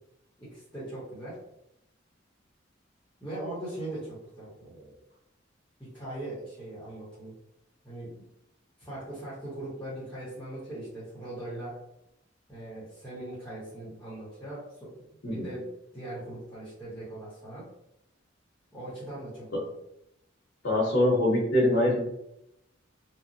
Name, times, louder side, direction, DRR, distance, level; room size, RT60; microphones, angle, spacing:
voice 1, 0.4-1.4 3.2-4.9 5.8-7.3 7.8-8.1 8.8-11.8 12.5-15.6 15.9-17.6 18.7-19.5, right 1 dB, 10° left, -10 dB, 0.9 m, -40 dB
voice 2, 20.6-22.1, left 1 dB, 70° left, -6 dB, 0.8 m, -23 dB
2.9 x 2.0 x 2.5 m, 0.82 s
head